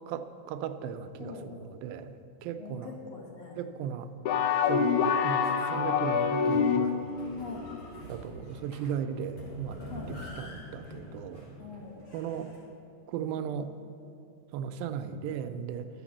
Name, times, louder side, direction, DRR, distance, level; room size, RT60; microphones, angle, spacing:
voice 1, 0.1-2.9 3.6-4.1 4.6-7.0 8.1-9.8 10.1-11.6 12.1-12.5 13.1-13.7 14.5-15.9, right 8 dB, 80° right, 9 dB, 2.3 m, -36 dB
voice 2, 1.2-1.5 2.6-3.6 7.3-7.7 9.9-10.2 11.6-12.0, left 5 dB, 65° left, -1 dB, 1.7 m, -43 dB
sound 1, 4.3-7.1, left 6 dB, 90° left, 1.7 m, -26 dB
sound 2, 6.4-12.6, equal, 40° left, 2.5 m, -46 dB
12.0 x 7.1 x 7.2 m, 2.7 s
omnidirectional pair, 4.3 m